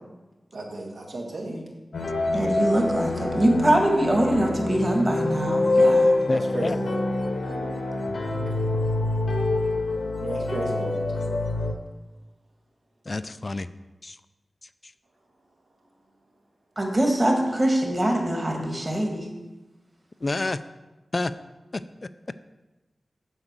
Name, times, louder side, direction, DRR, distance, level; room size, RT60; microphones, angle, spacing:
voice 1, 0.5-1.6 6.5-7.0 10.2-11.0, right 2 dB, 80° right, -2 dB, 2.0 m, -33 dB
sound 1, 1.9-11.7, left 2 dB, 70° left, 1.0 m, -25 dB
voice 2, 2.3-6.2 16.8-19.3, right 1 dB, 30° right, 1 dB, 1.6 m, -23 dB
voice 3, 6.3-6.8 13.1-13.7 14.0-14.2 14.8-14.9 20.2-20.6 21.1-21.3 21.7-22.1, left 2 dB, 40° left, 13 dB, 0.4 m, -29 dB
7.9 x 4.9 x 7.4 m, 1.1 s
wide cardioid pair, 90°, 0 cm